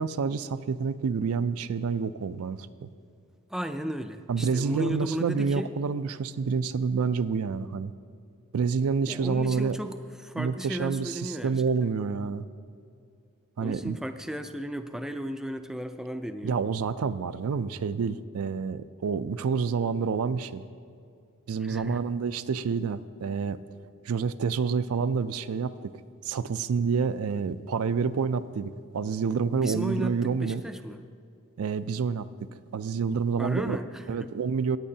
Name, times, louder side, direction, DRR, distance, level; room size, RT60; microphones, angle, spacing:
voice 1, 0.0-2.9 4.3-7.9 8.5-9.8 10.3-12.4 13.6-14.0 16.4-20.6 21.5-23.6 24.1-25.9 26.2-30.6 31.6-32.3 32.7-33.8 34.1-34.8, right 5 dB, 70° right, 13 dB, 0.4 m, -28 dB
voice 2, 3.5-5.7 9.1-11.9 13.6-16.6 21.6-22.1 29.5-31.0 33.4-34.3, equal, ahead, 7 dB, 0.3 m, -35 dB
17.0 x 10.0 x 2.7 m, 2.4 s
head